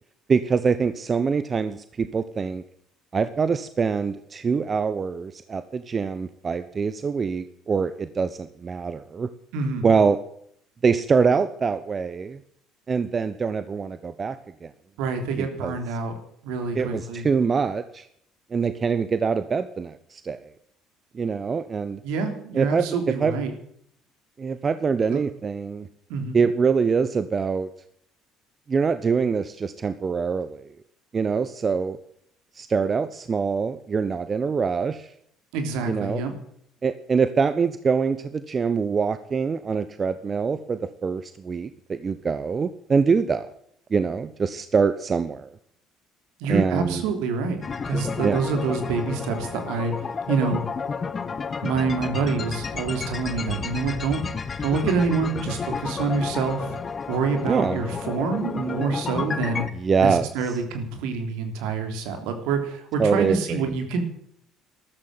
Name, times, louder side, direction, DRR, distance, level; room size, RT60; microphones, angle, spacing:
voice 1, 0.3-2.6 3.1-9.3 9.8-10.2 10.8-12.4 12.9-14.4 14.6-14.7 15.4-15.8 16.7-18.1 18.5-20.5 21.1-22.0 22.5-23.3 24.4-25.9 26.3-27.7 28.7-30.6 31.1-32.0 32.6-35.1 35.9-36.2 36.8-43.5 43.9-45.5 46.5-47.0 48.2-48.4 57.5-57.8 59.7-60.3 63.0-63.6, right 5 dB, 35° right, 13 dB, 1.0 m, -24 dB
voice 2, 9.5-9.9 15.0-16.1 16.4-17.3 22.0-23.5 25.1-25.2 26.1-26.4 35.5-36.3 46.4-47.6 47.8-50.6 51.6-54.2 54.6-56.8 57.1-59.6 60.0-64.0, right 4 dB, 70° right, 7 dB, 3.3 m, -26 dB
sound 1, 47.6-59.7, left 5 dB, 35° left, 1.4 m, -31 dB
13.5 x 13.5 x 7.6 m, 0.68 s
hypercardioid pair, 55°, 0 cm